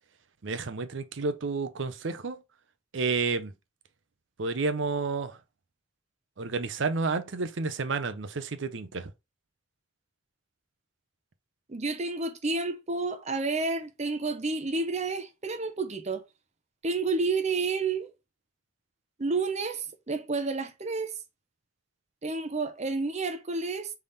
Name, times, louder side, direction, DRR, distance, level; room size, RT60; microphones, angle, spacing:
voice 1, 0.4-2.4 2.9-3.5 4.4-5.4 6.4-9.1, right 4 dB, 70° right, 0.6 m, -30 dB
voice 2, 11.7-16.2 16.8-18.1 19.2-21.1 22.2-23.9, right 3 dB, 35° right, 0.7 m, -30 dB
3.5 x 3.4 x 4.0 m
head